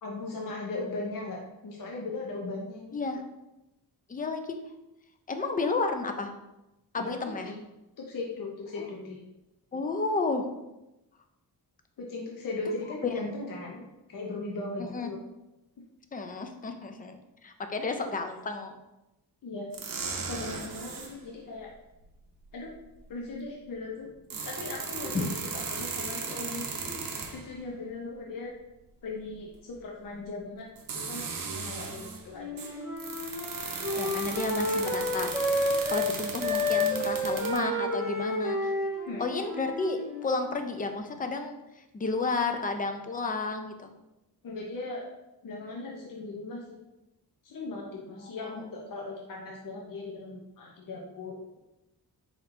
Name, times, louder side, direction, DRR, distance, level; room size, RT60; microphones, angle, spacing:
voice 1, 0.0-2.9 7.0-7.6 8.0-9.2 12.0-13.8 14.1-15.2 17.8-17.9 19.4-19.7 20.2-21.7 22.5-22.7 23.1-24.1 24.4-28.5 29.0-30.7 30.9-31.3 31.5-32.6 39.0-39.2 44.4-45.1 45.4-46.8 47.4-51.6, left 3 dB, 55° left, -2 dB, 0.7 m, -38 dB
voice 2, 2.9-3.2 4.1-4.6 5.3-6.3 6.9-7.5 9.7-10.5 13.0-13.3 14.8-15.1 16.1-18.8 25.0-25.4 33.9-38.7 39.2-43.9 47.8-48.8, left 3 dB, 25° left, 6 dB, 0.4 m, -32 dB
sound 1, 19.7-21.2 22.7-22.8 24.0-27.6 29.7-29.8 30.8-32.3 32.6-37.6, right 5 dB, 55° right, 0.7 m, -37 dB
Wind instrument woodwind instrument, 32.3-36.1 36.4-40.5, left 1 dB, 5° right, 1.3 m, -30 dB
4.3 x 4.2 x 2.5 m, 0.95 s
wide cardioid pair, 140°, 39 cm